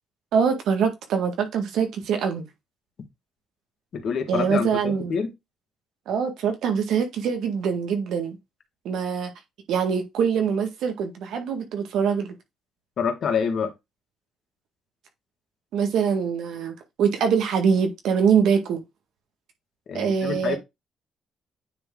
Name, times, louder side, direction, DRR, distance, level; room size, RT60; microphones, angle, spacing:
voice 1, 0.3-2.4 4.3-5.1 6.1-8.4 8.9-9.3 9.7-12.3 15.7-18.8 19.9-20.6, right 6 dB, 80° right, 1.9 m, -24 dB
voice 2, 3.9-5.3 13.0-13.7 19.9-20.6, left 6 dB, 60° left, 1.9 m, -26 dB
9.4 x 3.7 x 3.8 m
cardioid pair, 90°, 0 cm